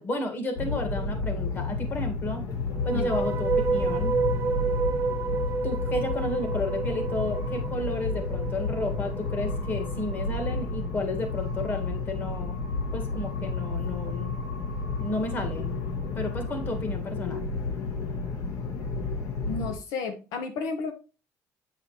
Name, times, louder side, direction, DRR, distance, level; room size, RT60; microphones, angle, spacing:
voice 1, 0.0-2.5 2.8-4.1 5.6-12.6 12.9-14.3 15.0-15.8 16.1-17.4, left 2 dB, 30° left, 5 dB, 1.8 m, -32 dB
sound 1, 0.6-19.7, left 3 dB, 60° left, 1.3 m, -31 dB
sound 2, 2.7-10.0, right 5 dB, 40° right, 0.7 m, -30 dB
voice 2, 19.5-20.9, left 4 dB, 80° left, 6 dB, 1.2 m, -32 dB
8.5 x 4.8 x 3.1 m, 0.32 s
cardioid pair, 145°, 6 cm